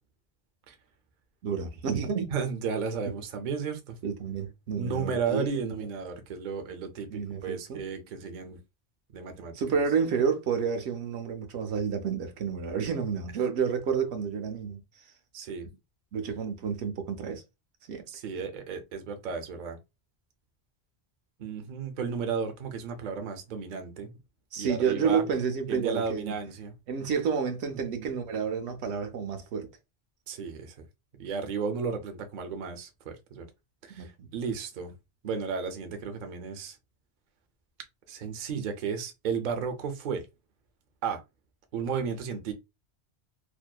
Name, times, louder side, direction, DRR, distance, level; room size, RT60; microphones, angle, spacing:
voice 1, 1.4-2.3 4.0-5.9 7.1-7.8 9.5-14.8 16.1-17.4 17.9-18.0 24.5-26.3 26.9-29.7 33.9-34.3, right 6 dB, 80° right, 0.9 m, -30 dB
voice 2, 2.3-3.9 4.8-8.6 9.1-9.5 15.3-15.7 18.1-19.8 21.4-24.1 24.6-25.2 25.7-26.7 27.9-28.1 30.3-30.7 31.2-33.5 33.8-34.9 35.2-36.8 38.1-40.2 41.0-41.2 41.7-42.5, right 6 dB, 55° right, 0.6 m, -33 dB
2.6 x 2.1 x 2.2 m
omnidirectional pair, 1.1 m